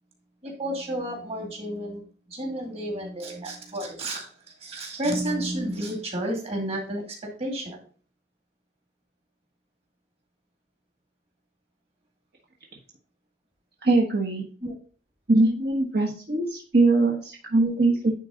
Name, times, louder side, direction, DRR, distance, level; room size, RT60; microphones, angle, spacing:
voice 1, 0.4-7.8 14.6-14.7 17.6-17.8, right 1 dB, 35° right, 0 dB, 2.3 m, -31 dB
voice 2, 13.8-14.5 15.3-18.1, right 2 dB, 60° right, -1 dB, 1.3 m, -22 dB
9.8 x 4.0 x 3.8 m, 0.39 s
head